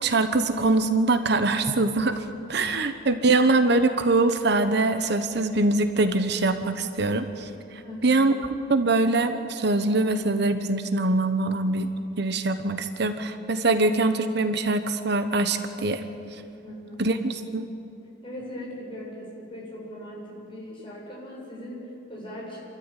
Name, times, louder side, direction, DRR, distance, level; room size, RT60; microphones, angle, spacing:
voice 1, 0.0-8.3 8.7-11.9 12.2-16.0 16.3-16.4 17.0-17.7, right 2 dB, 60° right, 9 dB, 1.0 m, -23 dB
voice 2, 2.7-3.3 7.8-8.3 16.6-17.1 18.2-22.6, equal, 25° left, -4 dB, 7.4 m, -40 dB
28.5 x 13.0 x 9.2 m, 2.7 s
head